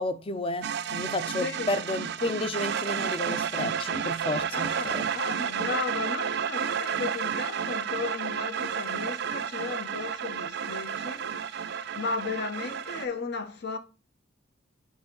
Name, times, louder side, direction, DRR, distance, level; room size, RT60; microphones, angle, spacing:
voice 1, 0.0-5.1, left 2 dB, 30° left, 0.5 m, -32 dB
sound 1, 0.6-13.1, right 7 dB, 60° right, 0.4 m, -31 dB
voice 2, 4.5-13.8, left 4 dB, 60° left, 0.9 m, -35 dB
9.2 x 3.6 x 3.9 m
head